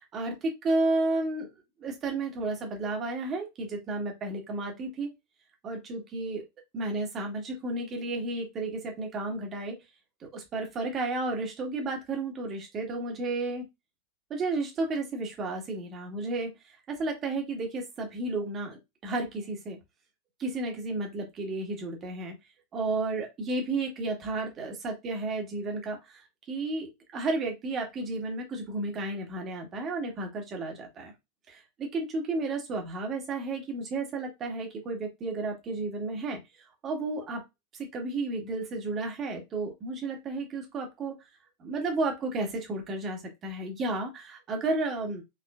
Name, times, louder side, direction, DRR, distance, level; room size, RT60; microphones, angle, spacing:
voice 1, 0.0-1.5 1.8-5.1 5.6-6.4 6.7-9.8 10.2-13.6 14.3-19.8 20.4-22.3 22.7-31.1 31.5-37.4 37.7-41.1 41.6-45.2, right 2 dB, 25° right, 2 dB, 1.6 m, -32 dB
5.1 x 3.6 x 2.5 m, 0.21 s
figure-of-eight pair, 90°, 0 cm